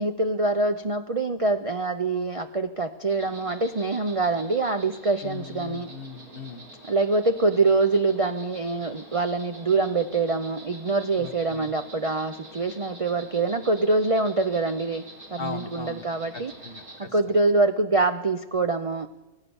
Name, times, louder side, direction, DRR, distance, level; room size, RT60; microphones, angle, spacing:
voice 1, 0.0-5.9 6.9-15.0 15.3-16.5 17.0-19.1, right 3 dB, 35° right, 7 dB, 0.6 m, -25 dB
Insect, 3.1-17.0, right 1 dB, 80° right, 4.7 m, -46 dB
voice 2, 5.2-6.6 11.2-11.7 15.4-16.0 16.6-17.1, left 5 dB, 40° left, 9 dB, 1.5 m, -38 dB
25.5 x 18.0 x 7.1 m, 1.1 s
omnidirectional pair, 1.5 m